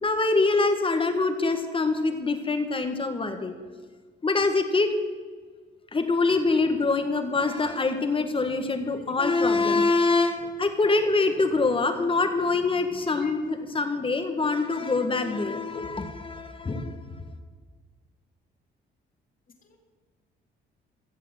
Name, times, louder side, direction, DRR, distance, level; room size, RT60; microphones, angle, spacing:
voice 1, 0.0-3.5 4.2-4.9 5.9-16.9, left 3 dB, 25° left, 7 dB, 1.7 m, -24 dB
voice 2, 12.6-13.3 19.7-19.8, left 4 dB, 45° left, 2 dB, 2.8 m, -41 dB
15.0 x 7.5 x 7.9 m, 1.5 s
cardioid pair, 90°, 20 cm